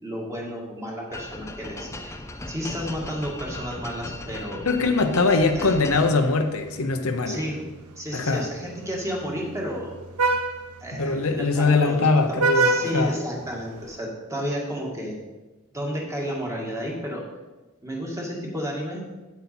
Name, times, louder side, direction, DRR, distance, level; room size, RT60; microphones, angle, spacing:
voice 1, 0.0-2.2 2.5-4.7 5.3-6.2 7.3-10.0 10.8-15.2 15.7-17.2 17.8-19.0, equal, 15° right, -2 dB, 1.9 m, -32 dB
sound 1, 1.1-6.5, left 2 dB, 15° left, 0.5 m, -37 dB
voice 2, 4.7-7.4 8.1-8.5 11.0-13.1, left 3 dB, 70° left, 6 dB, 0.8 m, -22 dB
Vehicle horn car horn honking, 5.9-14.0, right 3 dB, 75° right, 0.7 m, -30 dB
8.5 x 8.1 x 4.3 m, 1.2 s
head